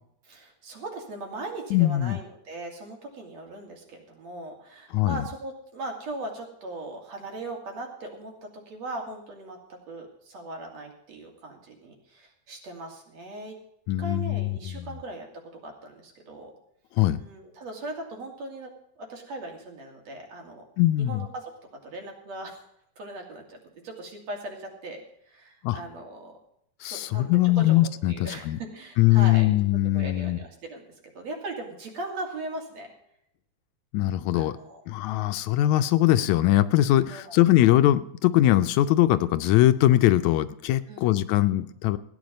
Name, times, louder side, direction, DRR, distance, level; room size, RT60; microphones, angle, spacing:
voice 1, 0.3-13.6 14.0-16.5 17.2-20.6 21.0-21.5 21.8-22.6 23.0-23.6 23.8-26.4 26.8-27.7 28.1-29.5 29.9-30.8 31.1-32.9 34.3-34.8 37.1-37.4 40.9-41.1, right 2 dB, 60° right, 2 dB, 3.9 m, -39 dB
voice 2, 1.7-2.2 4.9-5.2 13.9-14.9 17.0-17.2 20.8-21.3 25.6-25.8 26.8-28.6 29.0-30.4 33.9-34.6 34.9-42.0, left 14 dB, 80° left, 12 dB, 1.9 m, -21 dB
15.5 x 9.9 x 5.3 m, 0.73 s
omnidirectional pair, 3.4 m